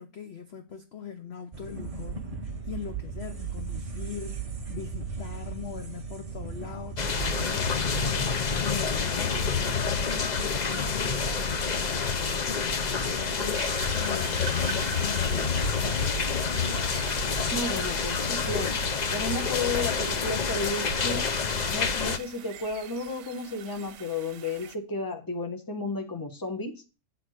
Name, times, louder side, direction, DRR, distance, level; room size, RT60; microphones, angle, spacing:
voice 1, 0.0-2.3 2.6-11.2 11.7-16.1, left 8 dB, 55° left, 0.8 m, -41 dB
sound 1, 1.5-12.0 12.4-12.5 12.7-13.5 14.1-14.7 15.0-15.1 15.6-15.7 16.3-16.4 17.2-17.4 18.0-18.1 18.2-18.3 18.7-19.2 19.5-19.6 20.0-20.1 20.4-20.5, right 5 dB, 35° right, 0.6 m, -38 dB
sound 2, 7.0-22.2, left 5 dB, 75° left, 0.4 m, -28 dB
sound 3, 13.5-24.8, right 10 dB, 90° right, 1.3 m, -45 dB
voice 2, 17.5-18.7 19.1-21.3 21.7-26.8, left 3 dB, 15° left, 1.0 m, -33 dB
8.4 x 3.9 x 6.4 m
omnidirectional pair, 1.7 m